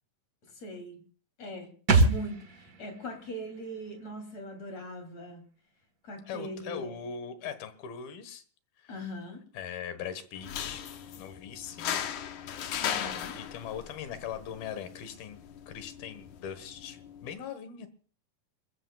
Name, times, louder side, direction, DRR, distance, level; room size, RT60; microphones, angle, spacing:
voice 1, 0.6-1.0 1.4-1.7 2.0-5.4 6.0-7.0 8.9-9.4 12.8-13.4, equal, 45° left, 4 dB, 4.3 m, -40 dB
sound 1, 1.9-5.4 5.7-5.8, right 3 dB, 70° right, 0.8 m, -29 dB
voice 2, 6.3-8.4 8.8-9.0 9.5-10.8 11.2-12.0 12.9-13.0 13.4-15.4 15.7-17.9, left 8 dB, 85° left, 11 dB, 3.4 m, -40 dB
sound 2, 10.4-17.3, left 9 dB, 65° left, 2.3 m, -38 dB
29.0 x 14.5 x 2.4 m, 0.42 s
omnidirectional pair, 4.2 m